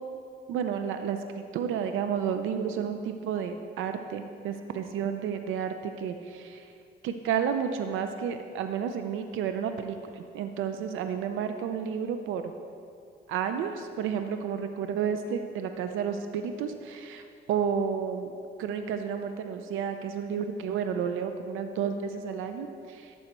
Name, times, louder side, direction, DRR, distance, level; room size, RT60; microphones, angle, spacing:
voice 1, 0.5-1.2 1.5-6.7 7.0-12.4 13.3-18.3 18.6-23.1, right 7 dB, 90° right, 7 dB, 0.6 m, -31 dB
12.5 x 4.3 x 8.0 m, 2.5 s
cardioid pair, 90°, 20 cm